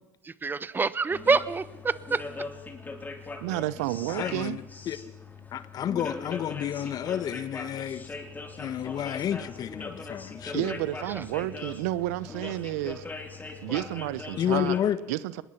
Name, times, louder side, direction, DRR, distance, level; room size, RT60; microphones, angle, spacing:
voice 1, 0.2-2.3 11.1-11.2, right 4 dB, 25° right, 1.2 m, -27 dB
sound 1, 1.1-14.8, left 3 dB, 20° left, 4.1 m, -41 dB
voice 2, 3.4-4.6 9.0-9.1 10.5-13.0 13.6-14.8 15.1-15.4, right 16 dB, 80° right, 1.0 m, -31 dB
voice 3, 4.1-4.6 4.9-5.0 5.5-8.0 8.6-10.7 14.4-15.0, left 10 dB, 50° left, 1.6 m, -30 dB
25.5 x 20.5 x 6.0 m
hypercardioid pair, 75°, 8 cm